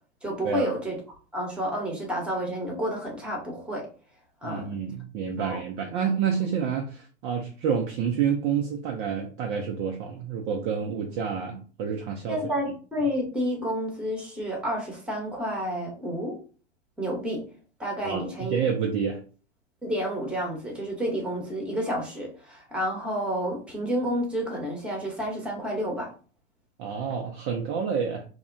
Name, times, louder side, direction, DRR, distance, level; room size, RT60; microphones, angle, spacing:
voice 1, 0.2-1.0 1.3-3.9 4.4-4.7 5.4-5.6 12.3-16.4 17.0-17.4 17.8-18.6 19.8-26.1, equal, 5° right, 0 dB, 0.9 m, -30 dB
voice 2, 4.4-12.4 18.0-19.2 26.8-28.3, right 7 dB, 35° right, 2 dB, 0.4 m, -28 dB
2.7 x 2.1 x 2.5 m, 0.38 s
hypercardioid pair, 110°, 33 cm